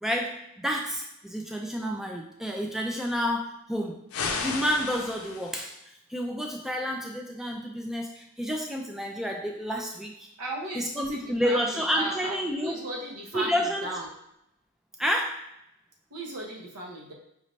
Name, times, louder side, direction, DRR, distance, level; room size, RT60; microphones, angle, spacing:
voice 1, 0.0-4.0 4.4-5.8 6.1-10.1 10.7-12.8 13.3-13.9 15.0-15.3, equal, ahead, 1 dB, 0.4 m, -29 dB
sound 1, 4.1-5.7, left 4 dB, 65° left, 0.5 m, -33 dB
voice 2, 10.4-14.1 16.1-17.1, right 1 dB, 85° right, -1 dB, 1.0 m, -36 dB
5.1 x 2.6 x 3.2 m, 0.81 s
head